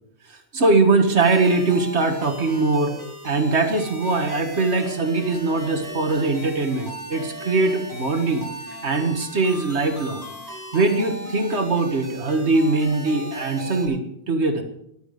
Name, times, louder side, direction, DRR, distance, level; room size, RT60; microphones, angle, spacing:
voice 1, 0.3-3.0 3.2-8.5 8.8-10.2 10.7-14.6, right 3 dB, 85° right, 6 dB, 2.0 m, -21 dB
sound 1, 1.2-13.9, equal, 15° right, 7.4 m, -37 dB
14.0 x 11.5 x 6.6 m, 0.75 s
omnidirectional pair, 1.1 m